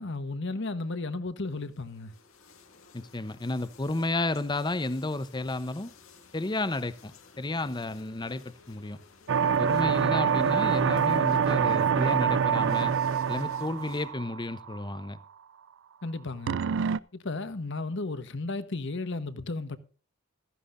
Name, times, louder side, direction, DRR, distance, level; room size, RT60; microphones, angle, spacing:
voice 1, 0.0-2.1 16.0-16.6 17.1-19.8, left 3 dB, 65° left, 1.2 m, -34 dB
sound 1, 1.5-14.1, left 5 dB, 90° left, 2.0 m, -55 dB
voice 2, 2.9-5.9 6.3-9.0 9.6-12.9 13.3-15.2, left 2 dB, 20° left, 0.8 m, -32 dB
sound 2, 9.3-14.8 16.5-17.0, right 7 dB, 65° right, 0.4 m, -25 dB
15.5 x 13.5 x 2.6 m
head